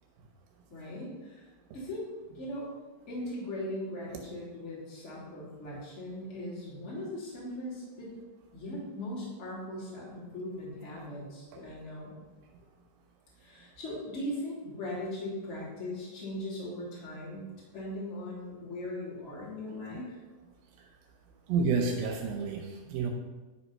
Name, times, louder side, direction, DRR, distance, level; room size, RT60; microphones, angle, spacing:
voice 1, 0.7-1.5 1.7-2.1 2.3-2.7 3.1-8.1 8.5-12.1 13.4-20.2, left 1 dB, 25° left, -6 dB, 1.7 m, -39 dB
voice 2, 21.5-23.1, right 4 dB, 75° right, 2 dB, 2.8 m, -29 dB
10.5 x 3.5 x 5.4 m, 1.2 s
omnidirectional pair, 5.1 m